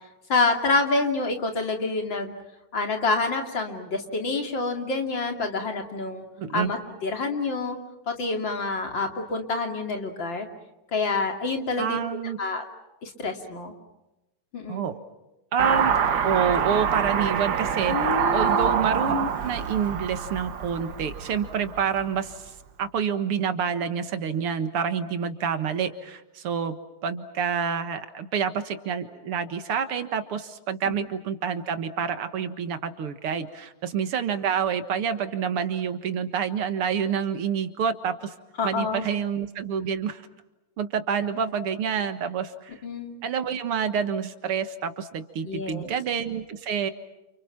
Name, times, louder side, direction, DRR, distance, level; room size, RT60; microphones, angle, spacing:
voice 1, 0.3-2.3 2.7-6.2 6.5-7.8 8.1-10.5 10.9-12.0 12.4-12.6 13.0-13.7 14.5-14.9 17.9-18.6 30.9-31.0 38.6-39.1 42.8-43.2 45.4-45.9, left 3 dB, 55° left, 4 dB, 3.3 m, -27 dB
voice 2, 6.4-6.7 11.8-12.4 14.7-15.0 15.5-15.9 16.2-18.0 18.3-22.4 22.8-26.8 27.0-38.3 38.6-40.2 40.8-42.7 43.2-46.9, right 7 dB, 80° right, 10 dB, 2.4 m, -28 dB
Car passing by / Accelerating revving vroom, 15.6-22.2, right 7 dB, 55° right, 1.6 m, -26 dB
29.0 x 29.0 x 5.9 m, 0.98 s
omnidirectional pair, 2.4 m